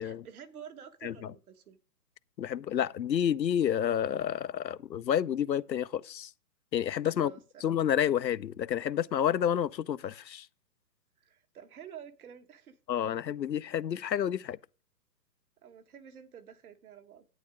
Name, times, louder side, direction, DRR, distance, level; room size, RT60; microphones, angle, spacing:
voice 1, 0.0-1.8 7.1-7.7 11.2-12.8 15.6-17.3, right 8 dB, 60° right, 1.6 m, -50 dB
voice 2, 2.4-6.3 6.7-7.3 7.6-10.5 12.9-14.6, left 9 dB, 85° left, 0.7 m, -29 dB
11.0 x 8.8 x 3.6 m
figure-of-eight pair, 130°, 50 cm